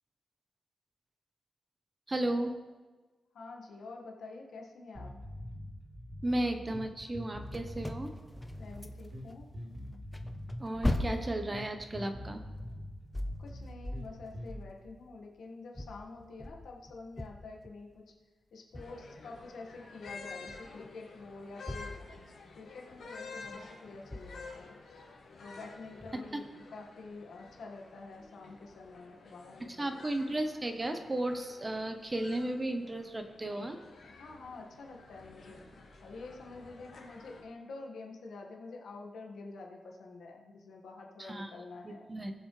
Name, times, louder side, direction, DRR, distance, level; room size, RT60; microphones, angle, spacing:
voice 1, 2.1-2.6 6.2-8.1 10.6-12.4 26.3-26.4 29.8-33.8 41.2-41.5 41.8-42.3, right 1 dB, 20° right, 6 dB, 0.9 m, -34 dB
voice 2, 3.3-5.1 8.6-9.5 13.4-18.0 18.5-24.8 25.4-26.5 26.7-29.9 34.1-35.6 36.0-42.1, left 3 dB, 85° left, 0 dB, 1.7 m, -48 dB
sound 1, 4.9-14.5, left 1 dB, 55° right, 3.7 m, -45 dB
sound 2, 7.5-9.4 9.7-15.2 15.7-18.0 18.7-19.1 20.1-20.9 21.2-22.7 23.5-23.6 24.1-24.6 26.0-26.2, left 1 dB, 10° left, 0.6 m, -40 dB
sound 3, 18.7-37.4, left 4 dB, 65° left, 2.5 m, -51 dB
19.5 x 7.2 x 3.3 m, 1.3 s
wide cardioid pair, 160°, 0 cm